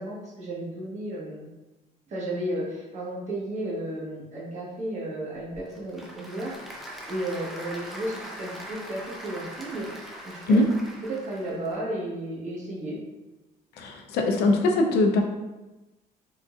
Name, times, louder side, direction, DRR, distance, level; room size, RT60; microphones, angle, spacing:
voice 1, 0.0-1.5 2.1-9.9 10.2-10.6 11.0-13.0, right 1 dB, 45° right, -6 dB, 1.3 m, -33 dB
Applause / Crowd, 5.3-11.8, equal, ahead, 0.5 m, -41 dB
voice 2, 13.8-15.2, left 2 dB, 75° left, 3 dB, 0.5 m, -21 dB
3.7 x 2.6 x 2.3 m, 1.1 s
cardioid pair, 110°, 17 cm